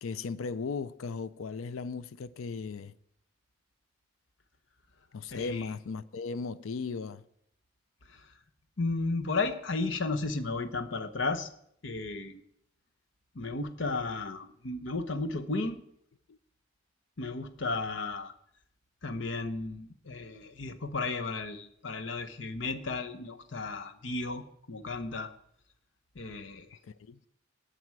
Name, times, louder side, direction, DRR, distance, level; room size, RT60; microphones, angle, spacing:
voice 1, 0.0-2.9 5.1-7.2 27.1-27.2, left 4 dB, 90° left, 0.5 m, -36 dB
voice 2, 5.3-5.7 8.8-11.5 11.8-12.4 13.4-15.8 17.2-18.3 19.0-25.3 26.2-26.7, left 3 dB, 65° left, 0.9 m, -34 dB
18.5 x 6.9 x 4.7 m
head